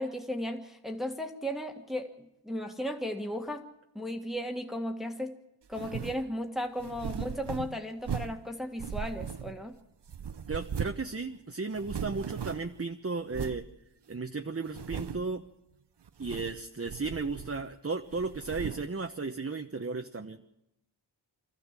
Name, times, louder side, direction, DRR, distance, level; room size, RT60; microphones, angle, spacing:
voice 1, 0.0-3.7 4.0-5.4 5.7-9.8, equal, ahead, 3 dB, 1.7 m, -35 dB
sound 1, 5.7-6.3 6.8-8.4 8.8-9.8 10.1-11.1 11.4-11.5 11.7-12.8 13.3-13.7 14.1-14.2 14.7-15.3 16.1-16.6 16.9-17.7 18.1-18.9, right 7 dB, 65° right, 0.8 m, -38 dB
voice 2, 10.5-13.7 14.1-15.4 16.2-20.4, right 4 dB, 30° right, 6 dB, 1.0 m, -35 dB
25.0 x 14.0 x 7.5 m, 0.85 s
wide cardioid pair, 50°, 45 cm